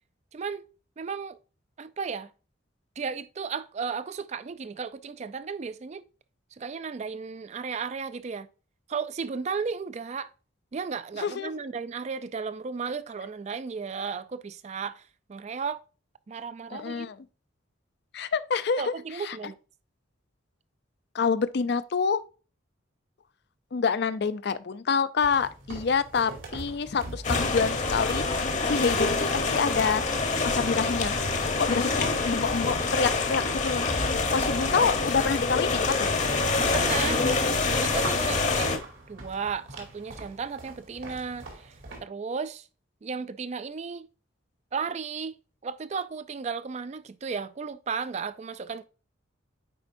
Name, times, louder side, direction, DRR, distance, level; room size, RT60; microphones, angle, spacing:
voice 1, 0.3-0.6 1.0-1.4 1.8-2.3 3.0-6.0 6.6-8.5 8.9-10.3 10.7-15.0 15.3-15.8 16.3-17.1 18.8-19.6 31.7-32.2 36.7-37.3 37.6-41.7 42.0-42.7 43.0-44.1 44.7-45.4 45.6-48.8, right 5 dB, 35° right, 0.3 m, -34 dB
voice 2, 11.2-11.5 16.7-17.2 18.1-18.9 19.2-19.4 21.1-22.2 23.7-28.2 28.6-30.0 30.4-31.2 31.6-33.9 34.3-36.1, left 5 dB, 55° left, 0.4 m, -27 dB
sound 1, 25.2-42.0, right 2 dB, 80° right, 2.3 m, -43 dB
sound 2, 27.2-38.8, left 3 dB, 40° left, 0.9 m, -26 dB
9.1 x 4.5 x 2.6 m
head